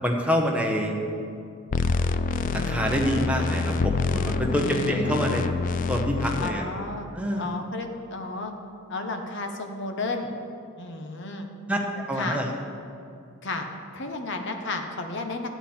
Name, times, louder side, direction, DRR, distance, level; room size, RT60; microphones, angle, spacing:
voice 1, 0.0-0.9 2.5-5.4 5.9-6.6 7.1-7.5 11.7-12.5, equal, 5° right, 0 dB, 1.0 m, -26 dB
sound 1, 1.7-6.5, left 4 dB, 40° left, 0.3 m, -26 dB
voice 2, 4.6-5.4 6.4-7.1 7.4-8.5 8.9-10.3 10.8-11.5 12.2-12.4 13.4-13.7 13.9-15.5, left 2 dB, 55° left, 4 dB, 1.0 m, -32 dB
11.0 x 9.2 x 4.4 m, 2.5 s
head